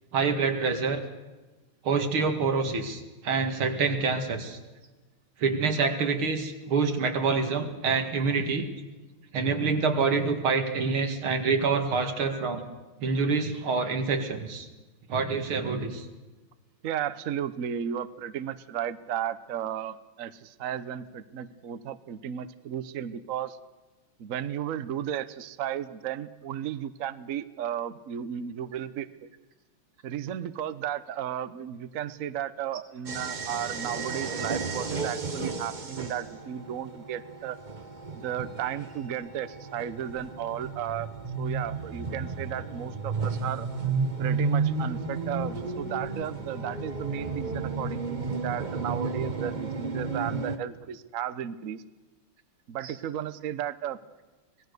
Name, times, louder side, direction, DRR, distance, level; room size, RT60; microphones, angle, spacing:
voice 1, 0.1-1.0 1.8-4.6 5.4-8.7 9.3-12.6 13.0-14.7 15.1-16.1 52.8-52.9, right 4 dB, 85° right, 5 dB, 2.9 m, -26 dB
voice 2, 16.8-23.6 24.2-29.3 30.0-37.6 38.1-41.1 41.4-43.7 44.2-51.8 52.7-54.0, right 10 dB, 55° right, 13 dB, 1.0 m, -34 dB
sound 1, 33.1-50.6, right 4 dB, 30° right, 1.1 m, -33 dB
25.5 x 18.5 x 6.7 m, 1.2 s
omnidirectional pair, 2.2 m